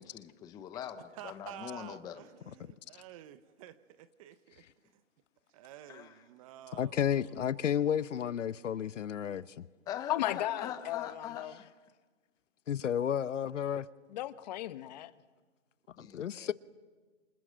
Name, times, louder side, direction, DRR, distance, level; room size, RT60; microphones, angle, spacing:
voice 1, 0.0-2.2 5.9-6.1 9.9-11.7 16.0-16.5, left 9 dB, 10° left, 0.8 m, -42 dB
voice 2, 1.1-4.6 4.9-5.0 5.5-7.4, right 13 dB, 25° right, 0.9 m, -51 dB
voice 3, 6.7-9.7 12.7-13.9 16.0-16.5, left 9 dB, 70° left, 1.0 m, -32 dB
voice 4, 10.1-11.5 14.1-15.1, left 14 dB, 35° left, 1.1 m, -35 dB
28.0 x 27.5 x 7.7 m
hypercardioid pair, 145°, 38 cm